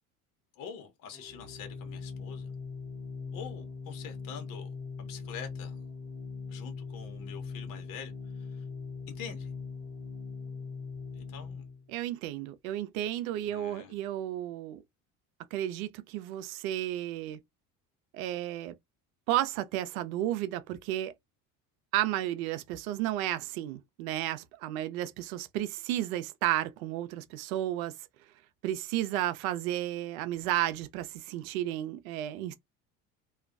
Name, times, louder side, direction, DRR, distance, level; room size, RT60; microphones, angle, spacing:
voice 1, 0.6-2.5 3.3-4.7 5.0-5.8 6.5-8.6 9.1-9.5 11.1-11.7 13.4-13.9, left 7 dB, 50° left, 0.9 m, -45 dB
Organ, 1.1-11.9, left 5 dB, 25° left, 1.1 m, -41 dB
voice 2, 11.9-14.8 15.5-17.4 18.1-18.8 19.3-21.1 21.9-27.9 28.6-32.5, right 13 dB, 80° right, 0.5 m, -32 dB
2.3 x 2.2 x 2.4 m
supercardioid pair, 85°, 41 cm